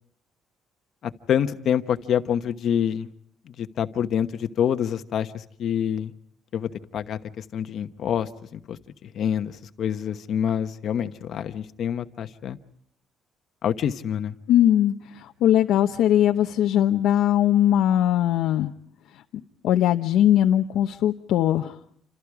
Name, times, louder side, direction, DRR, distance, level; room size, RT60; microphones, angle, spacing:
voice 1, 1.0-3.1 3.5-6.1 6.5-12.6 13.6-14.4, left 9 dB, 45° left, 9 dB, 1.1 m, -27 dB
voice 2, 14.5-18.7 19.6-21.8, left 11 dB, 70° left, 3 dB, 0.9 m, -20 dB
28.5 x 27.0 x 4.9 m, 0.66 s
cardioid pair, 175°, 0 cm